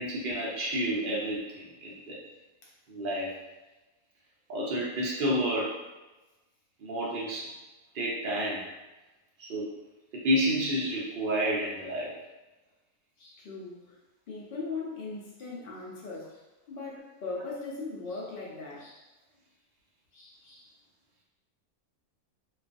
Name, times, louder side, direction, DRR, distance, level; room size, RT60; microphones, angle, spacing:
voice 1, 0.0-2.2 2.9-3.3 4.5-5.8 6.8-7.5 7.9-8.6 9.4-9.7 10.2-12.1, equal, 80° right, -5 dB, 0.4 m, -30 dB
voice 2, 13.2-14.0 14.3-19.1 20.1-20.7, left 3 dB, 85° left, -5 dB, 0.4 m, -40 dB
2.4 x 2.3 x 2.5 m, 1.1 s
omnidirectional pair, 1.6 m